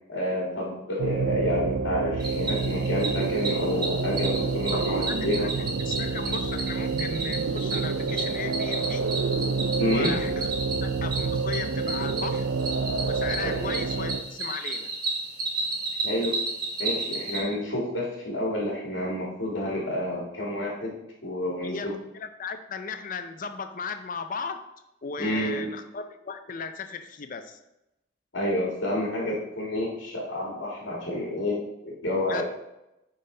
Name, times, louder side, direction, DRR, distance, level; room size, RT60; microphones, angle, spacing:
voice 1, 0.1-5.4 9.8-10.1 13.4-13.5 16.0-16.3 16.8-21.0 21.2-21.9 25.2-25.6 28.3-32.4, left 1 dB, 70° left, -3 dB, 1.8 m, -29 dB
sound 1, 1.0-14.2, right 4 dB, 75° right, 0.5 m, -28 dB
Cricket, 2.2-17.4, right 3 dB, 45° right, 1.4 m, -33 dB
voice 2, 4.7-5.5 5.8-9.1 9.9-10.5 10.8-12.5 13.0-14.9 21.6-24.7 25.0-27.6 32.3-32.4, left 5 dB, 40° left, 8 dB, 0.5 m, -36 dB
9.4 x 4.1 x 3.8 m, 0.90 s
head